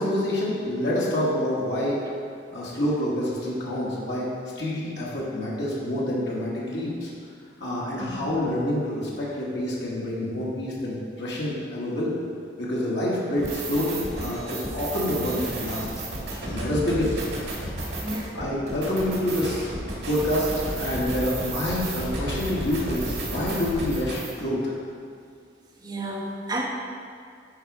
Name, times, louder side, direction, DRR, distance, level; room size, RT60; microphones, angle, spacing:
voice 1, 0.0-2.0 2.5-4.3 4.6-7.1 7.6-12.1 12.6-15.9 16.4-17.1 18.3-19.7 20.1-24.7, left 1 dB, 80° left, -6 dB, 1.7 m, -27 dB
sound 1, 13.4-24.3, right 2 dB, 80° right, 1.9 m, -32 dB
voice 2, 18.0-18.3 25.8-26.7, right 1 dB, 25° right, -4 dB, 1.2 m, -31 dB
9.0 x 4.9 x 4.8 m, 2.2 s
head